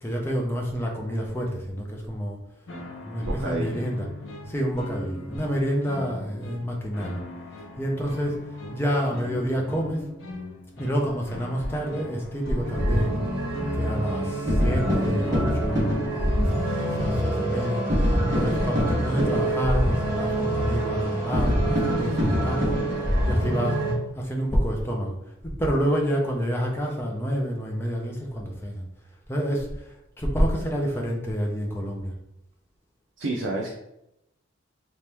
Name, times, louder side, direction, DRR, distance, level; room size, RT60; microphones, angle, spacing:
voice 1, 0.0-2.4 3.0-4.1 4.5-7.2 7.8-10.1 10.8-13.2 13.7-16.0 16.4-17.8 18.3-22.8 23.3-23.8 24.1-28.8 29.3-32.1, equal, 10° left, -1 dB, 0.6 m, -28 dB
sound 1, 2.7-17.3, left 1 dB, 80° left, 0.8 m, -40 dB
voice 2, 3.2-3.8 33.2-33.7, right 2 dB, 65° right, -1 dB, 0.5 m, -29 dB
sound 2, 12.6-23.9, equal, 15° right, 1.3 m, -24 dB
3.1 x 2.9 x 3.4 m, 0.84 s
head